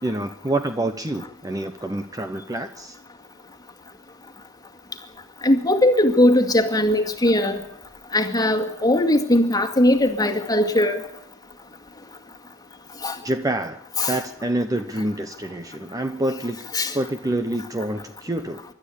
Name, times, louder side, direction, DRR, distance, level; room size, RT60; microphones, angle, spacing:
voice 1, 0.0-3.0 13.2-13.8 14.1-16.7 16.9-18.6, right 1 dB, 15° right, 8 dB, 0.8 m, -27 dB
voice 2, 5.4-7.6 8.1-11.0 13.0-13.2 14.0-14.2 16.7-17.0, left 1 dB, 20° left, 4 dB, 2.1 m, -19 dB
25.0 x 12.5 x 8.6 m, 0.80 s
head